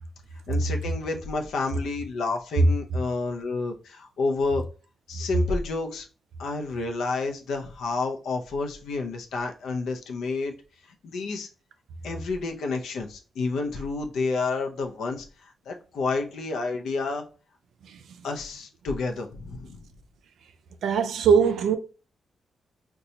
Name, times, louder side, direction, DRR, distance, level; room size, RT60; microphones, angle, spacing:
voice 1, 0.5-4.7 5.1-6.1 6.4-10.5 10.8-11.5 12.0-17.3 18.2-19.9, left 3 dB, 85° left, 0.5 m, -30 dB
voice 2, 20.8-21.8, right 6 dB, 80° right, 0.4 m, -21 dB
4.0 x 2.2 x 2.7 m
wide cardioid pair, 165°, 0 cm